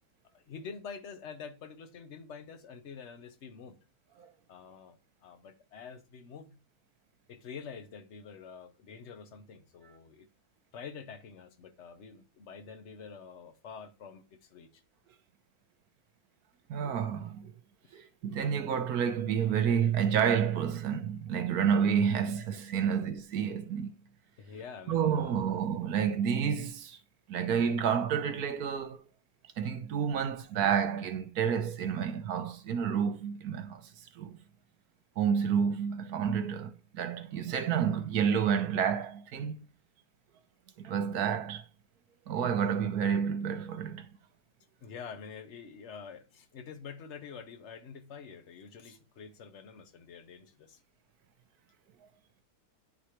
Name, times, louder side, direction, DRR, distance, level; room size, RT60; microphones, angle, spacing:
voice 1, 0.3-3.8 4.5-6.5 7.3-10.3 10.7-14.8 22.8-23.0 24.4-25.5 44.8-50.8, left 6 dB, 55° left, 1.1 m, -47 dB
voice 2, 16.7-17.5 17.9-23.9 24.9-27.0 27.3-29.1 29.6-33.8 34.1-34.4 35.2-39.6 40.8-41.6 42.3-44.1, right 7 dB, 75° right, 1.2 m, -29 dB
10.5 x 4.8 x 3.0 m
omnidirectional pair, 1.6 m